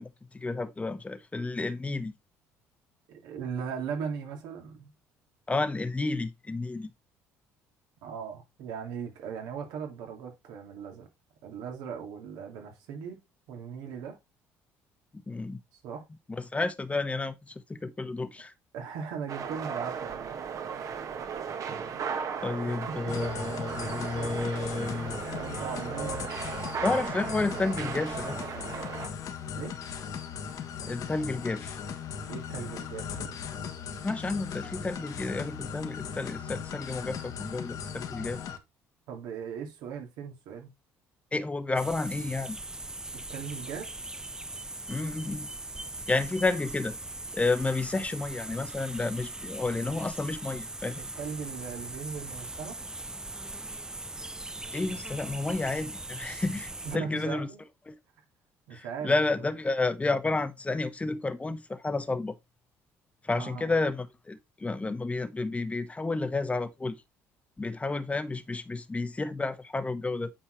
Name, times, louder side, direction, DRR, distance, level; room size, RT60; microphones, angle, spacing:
voice 1, 0.0-2.1 5.5-6.9 15.1-15.6 16.3-18.5 22.4-25.2 26.8-28.4 30.9-31.8 34.0-38.4 41.3-42.6 44.9-45.5 46.1-47.0 47.3-51.0 54.7-57.5 57.9-58.0 58.7-62.4 63.2-67.0 67.6-70.3, left 3 dB, 20° left, 1.2 m, -31 dB
voice 2, 3.1-4.9 8.0-11.1 11.4-13.2 13.5-14.2 15.8-16.1 18.7-20.4 22.6-23.3 25.3-26.2 29.5-29.7 32.3-33.3 39.1-40.7 43.3-43.9 51.0-52.8 56.8-57.6 58.7-59.1 63.3-63.7, right 6 dB, 75° right, 2.5 m, -38 dB
sound 1, 19.3-29.1, right 6 dB, 55° right, 1.5 m, -36 dB
sound 2, 23.1-38.6, left 7 dB, 60° left, 1.3 m, -38 dB
sound 3, 41.7-57.0, right 2 dB, 10° right, 0.4 m, -40 dB
9.0 x 4.6 x 3.2 m
supercardioid pair, 70°, 7 cm